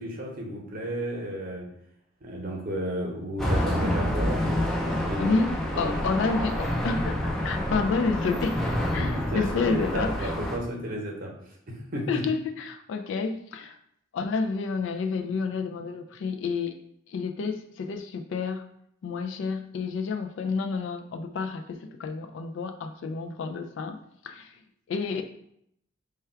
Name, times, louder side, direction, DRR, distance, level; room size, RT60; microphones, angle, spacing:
voice 1, 0.0-1.7 2.2-4.4 5.0-5.3 5.7-6.2 9.0-11.3 11.7-12.2, equal, 45° right, -1 dB, 0.8 m, -33 dB
sound 1, 3.4-10.6, left 1 dB, ahead, 0.5 m, -28 dB
voice 2, 5.2-8.6 8.9-10.3 12.1-13.8 14.1-16.7 17.1-18.7 19.0-24.0 24.2-24.6 24.9-25.2, left 4 dB, 65° left, 6 dB, 0.3 m, -30 dB
3.4 x 2.3 x 4.4 m, 0.72 s
head